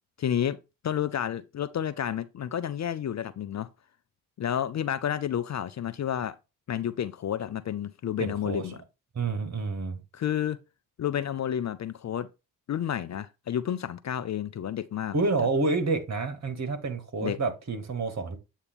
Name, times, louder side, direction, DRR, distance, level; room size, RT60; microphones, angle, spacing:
voice 1, 0.2-0.6 0.8-3.7 4.4-6.4 6.7-8.8 10.1-10.6 11.0-12.3 12.7-15.1 17.2-17.4, left 10 dB, 35° left, 0.6 m, -30 dB
voice 2, 8.2-8.8 9.1-10.0 15.1-18.4, right 3 dB, 35° right, 1.8 m, -29 dB
8.1 x 2.9 x 5.2 m
hypercardioid pair, 45°, 48 cm